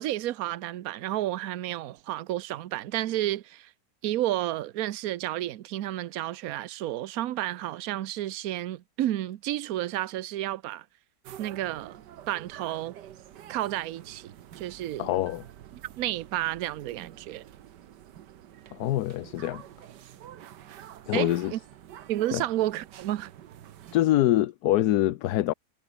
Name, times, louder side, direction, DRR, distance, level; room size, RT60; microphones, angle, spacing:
voice 1, 0.0-3.7 4.0-10.8 11.4-12.9 13.5-15.1 16.0-17.5 21.1-21.6 22.1-23.3, right 14 dB, 65° right, 1.1 m, -31 dB
sound 1, 11.2-24.0, right 11 dB, 80° right, 1.6 m, -48 dB
voice 2, 15.0-15.4 18.7-19.6 21.1-21.5 22.3-22.4 23.9-25.5, left 14 dB, 70° left, 1.2 m, -24 dB
omnidirectional pair, 1.8 m